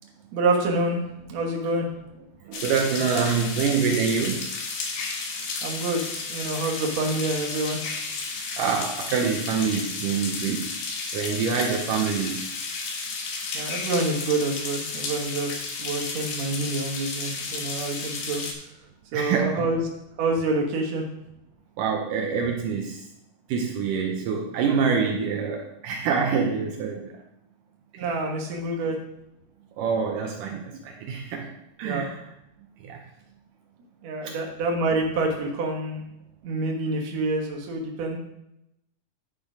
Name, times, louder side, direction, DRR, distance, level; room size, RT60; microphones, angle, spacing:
voice 1, 0.3-1.0 1.3-1.9 5.6-7.8 13.5-18.4 19.1-19.8 20.2-21.0 28.0-29.0 31.8-32.1 34.0-36.0 36.4-38.2, right 2 dB, 60° right, 1 dB, 2.5 m, -27 dB
voice 2, 2.4-4.6 8.3-12.4 19.1-19.7 21.8-23.1 23.5-27.1 27.9-28.1 29.8-31.5 31.8-32.2 32.8-33.0 34.2-34.4, right 6 dB, 80° right, 2 dB, 2.4 m, -26 dB
sound 1, 2.5-18.5, left 4 dB, 85° left, 3.3 m, -33 dB
10.0 x 5.7 x 5.0 m, 0.84 s
omnidirectional pair, 3.9 m